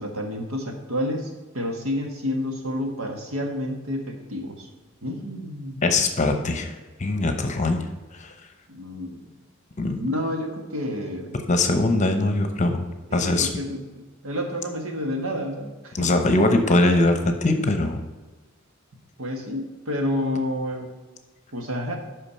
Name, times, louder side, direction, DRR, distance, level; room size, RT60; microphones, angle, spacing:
voice 1, 0.0-4.7 5.0-5.8 8.7-9.3 10.0-11.4 13.1-16.2 19.2-20.9 21.5-22.0, left 1 dB, 75° right, 3 dB, 1.6 m, -29 dB
voice 2, 5.8-6.7 7.0-7.9 8.2-8.3 9.8-10.0 11.5-13.5 15.9-18.0, left 2 dB, 35° left, 6 dB, 0.9 m, -21 dB
8.8 x 5.7 x 5.6 m, 1.2 s
head